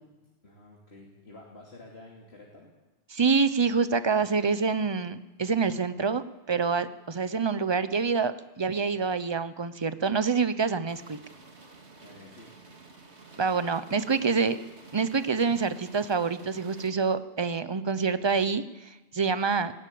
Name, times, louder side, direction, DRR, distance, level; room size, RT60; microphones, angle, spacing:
voice 1, 0.4-2.7 12.0-12.8 14.0-14.4, left 2 dB, 65° left, -2 dB, 3.0 m, -50 dB
voice 2, 3.1-11.2 13.4-14.6 14.9-19.7, right 5 dB, 25° right, 13 dB, 0.8 m, -26 dB
sound 1, 10.9-16.9, right 3 dB, 70° right, 2.4 m, -51 dB
18.5 x 16.5 x 8.6 m, 1.1 s
omnidirectional pair, 1.2 m